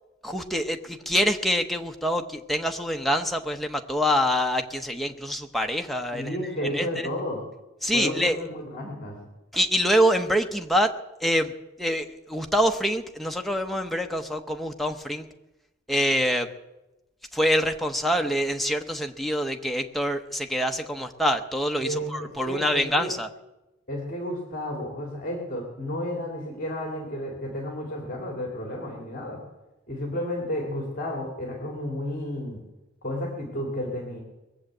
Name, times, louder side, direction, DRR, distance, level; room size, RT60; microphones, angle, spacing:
voice 1, 0.2-6.9 7.8-8.4 9.5-10.9 11.2-11.5 11.8-15.3 15.9-16.5 17.3-23.3, equal, ahead, 3 dB, 0.9 m, -25 dB
voice 2, 6.1-7.4 7.9-9.2 21.8-23.1 23.9-29.4 29.9-32.6 33.0-34.2, left 1 dB, 45° left, 0 dB, 2.6 m, -32 dB
21.5 x 7.3 x 7.8 m, 1.0 s
head